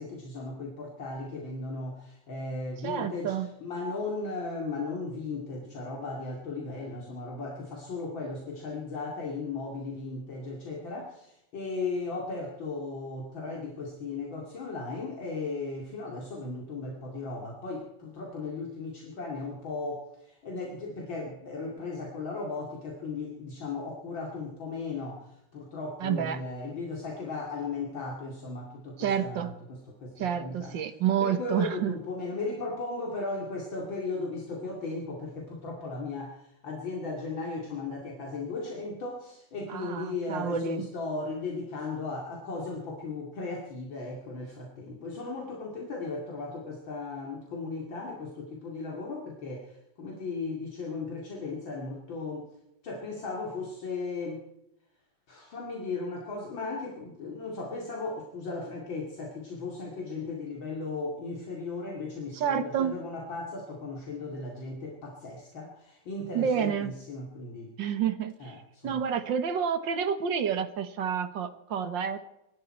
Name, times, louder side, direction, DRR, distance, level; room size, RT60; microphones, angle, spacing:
voice 1, 0.0-3.3 3.6-30.7 31.2-52.5 52.8-54.5 55.3-67.7 68.4-69.0, left 3 dB, 65° left, -1 dB, 3.2 m, -36 dB
voice 2, 2.8-3.5 26.0-26.4 29.0-29.5 30.2-31.9 39.7-40.9 62.3-62.9 66.3-67.0 67.8-68.6 68.8-72.2, right 8 dB, 65° right, 11 dB, 2.0 m, -29 dB
23.5 x 12.5 x 4.4 m, 0.83 s
omnidirectional pair, 2.3 m